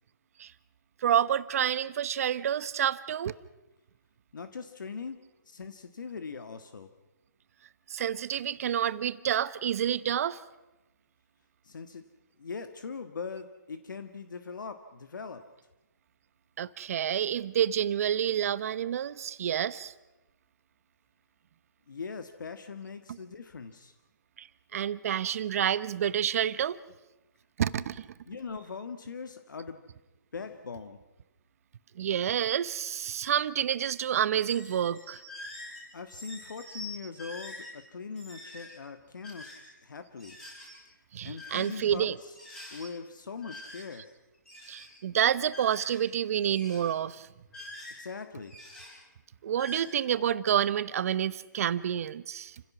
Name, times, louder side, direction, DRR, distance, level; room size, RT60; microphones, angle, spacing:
voice 1, 1.0-3.3 7.9-10.4 16.6-19.9 24.4-24.5 24.7-26.8 27.6-28.1 32.0-35.2 41.1-42.2 44.7-47.3 49.4-52.6, right 9 dB, 50° right, 0.9 m, -28 dB
voice 2, 4.3-5.2 5.4-6.9 11.6-12.1 12.4-15.5 21.9-23.9 28.3-29.9 30.3-31.0 35.9-39.5 39.8-40.4 41.2-42.3 42.7-44.1 48.0-48.6, left 5 dB, 80° left, 1.7 m, -41 dB
sound 1, 34.3-35.8 36.1-36.9 37.2-37.7 38.1-38.7 39.2-39.7 40.2-40.8 41.4-42.0 42.3-42.9 43.4-44.1 44.3-44.9 45.5-46.1 46.4-46.9 47.5-48.1 48.4-48.9 49.5-49.8, left 1 dB, 5° left, 6.9 m, -45 dB
30.0 x 16.5 x 6.1 m
hypercardioid pair, 150°, 10 cm